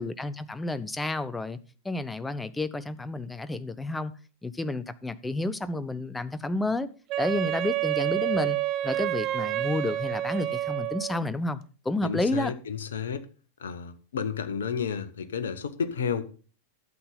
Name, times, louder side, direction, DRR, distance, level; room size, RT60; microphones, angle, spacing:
voice 1, 0.0-1.6 1.8-4.1 4.4-6.9 7.2-8.6 8.8-12.5, left 2 dB, 10° left, 0.7 m, -30 dB
Wind instrument woodwind instrument, 7.1-11.2, right 14 dB, 35° right, 0.6 m, -29 dB
voice 2, 12.0-13.2 13.6-16.2, left 6 dB, 65° left, 1.1 m, -31 dB
12.0 x 7.9 x 3.9 m
figure-of-eight pair, 90°, 0 cm